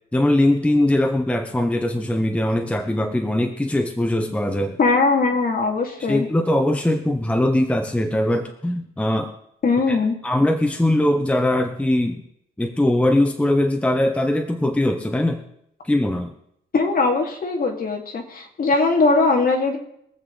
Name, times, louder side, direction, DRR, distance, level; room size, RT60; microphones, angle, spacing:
voice 1, 0.1-4.8 6.1-9.3 9.9-10.0 10.2-12.2 12.6-15.4 15.8-16.3, left 1 dB, 5° left, 6 dB, 0.7 m, -21 dB
voice 2, 4.8-6.3 9.6-10.2 16.7-19.8, left 3 dB, 45° left, 2 dB, 2.2 m, -20 dB
23.0 x 7.9 x 3.9 m, 0.74 s
wide cardioid pair, 160°, 21 cm